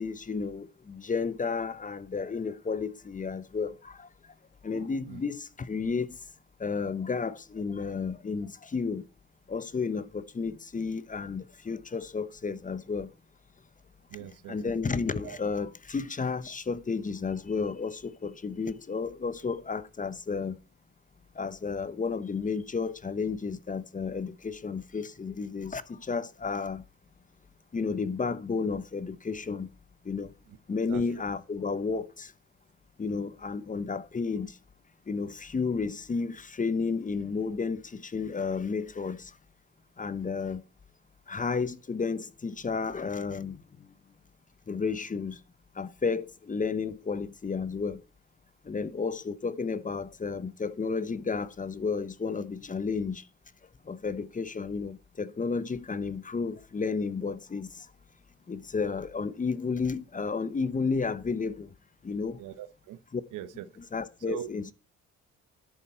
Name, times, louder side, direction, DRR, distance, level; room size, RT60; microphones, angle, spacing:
voice 1, 0.0-4.1 4.6-6.2 6.6-9.0 9.5-13.1 14.5-20.6 21.3-26.8 27.7-29.7 30.0-30.3 30.7-32.3 33.0-34.6 35.1-39.3 40.0-40.6 41.3-43.9 44.7-45.4 45.8-48.0 48.6-53.2 53.9-57.9 58.5-61.7 62.0-62.4 63.1-63.2 63.8-64.7, left 5 dB, 25° left, 0.9 m, -32 dB
voice 2, 14.1-14.6 15.2-15.4 30.9-31.0 62.4-63.0 63.3-63.6 64.3-64.5, right 12 dB, 90° right, 1.1 m, -40 dB
11.0 x 8.5 x 4.5 m
cardioid pair, 90°, 30 cm